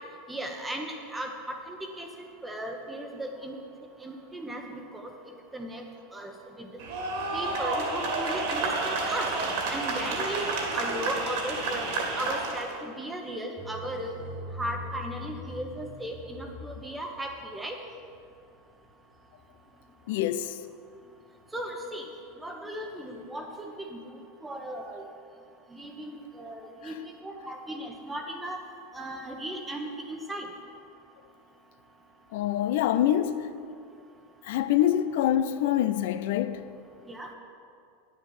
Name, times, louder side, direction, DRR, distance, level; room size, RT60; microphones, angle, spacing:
voice 1, 0.3-3.6 4.0-4.6 4.9-5.1 5.5-5.8 6.1-6.3 6.6-6.7 7.3-9.3 9.7-14.2 14.5-17.8 21.5-22.1 22.4-25.0 25.7-28.6 28.9-30.5 37.1-37.3, right 1 dB, 10° right, 1.1 m, -36 dB
sound 1, 6.8-12.7, right 3 dB, 65° right, 2.1 m, -30 dB
sound 2, 13.6-20.4 21.0-21.4 21.7-21.8 22.3-23.6, left 1 dB, 5° left, 1.8 m, -43 dB
voice 2, 20.1-20.6 26.8-27.0 32.3-33.5 34.4-36.7, left 11 dB, 65° left, 0.5 m, -26 dB
9.6 x 7.0 x 7.3 m
hypercardioid pair, 90°, 0 cm